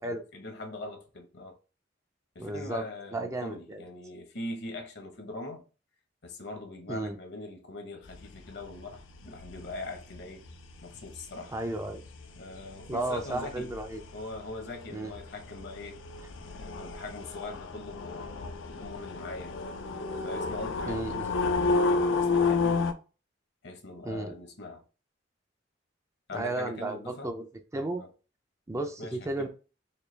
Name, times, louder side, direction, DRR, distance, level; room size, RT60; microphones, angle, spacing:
voice 1, 0.0-1.6 2.3-5.6 6.2-10.4 10.8-11.5 12.4-13.7 14.1-16.0 16.4-19.6 20.2-22.8 23.6-24.8 26.3-27.3 28.0-28.1 29.0-29.5, left 2 dB, 65° left, 0.9 m, -42 dB
voice 2, 2.4-2.8 3.1-3.8 6.9-7.2 11.5-12.0 12.9-14.0 14.9-15.1 20.9-21.3 24.0-24.4 26.3-27.5 27.7-28.0 28.7-29.5, right 2 dB, 15° right, 0.4 m, -33 dB
sound 1, 8.1-22.9, left 4 dB, 80° left, 0.5 m, -32 dB
4.4 x 2.3 x 3.2 m
head